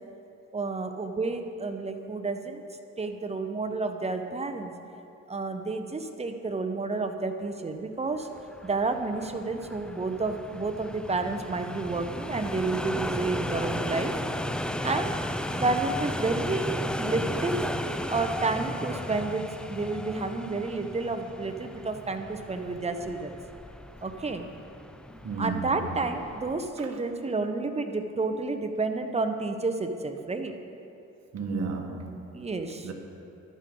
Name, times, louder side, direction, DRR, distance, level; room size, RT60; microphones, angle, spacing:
voice 1, 0.5-2.6 3.0-4.7 5.3-8.3 8.6-14.1 14.8-15.2 15.5-17.7 18.1-23.3 24.0-24.5 25.4-30.5 32.3-32.9, right 3 dB, 20° right, 6 dB, 1.0 m, -30 dB
sound 1, 8.4-26.7, left 1 dB, 5° left, 0.5 m, -35 dB
voice 2, 25.2-25.8 31.3-32.5 32.8-32.9, right 4 dB, 60° right, 3 dB, 1.5 m, -33 dB
13.5 x 11.5 x 3.9 m, 2.7 s
cardioid pair, 90°, 30 cm